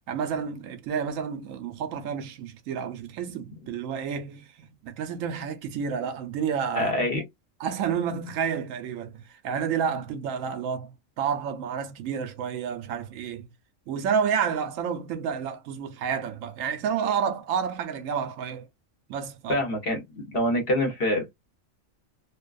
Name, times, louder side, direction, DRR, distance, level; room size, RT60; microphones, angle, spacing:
voice 1, 0.1-6.9 7.6-13.5 13.9-18.7 19.1-19.6, right 7 dB, 80° right, 1.0 m, -30 dB
voice 2, 6.8-7.2 19.5-21.4, left 1 dB, 50° left, 1.0 m, -26 dB
2.6 x 2.3 x 2.3 m
omnidirectional pair, 1.4 m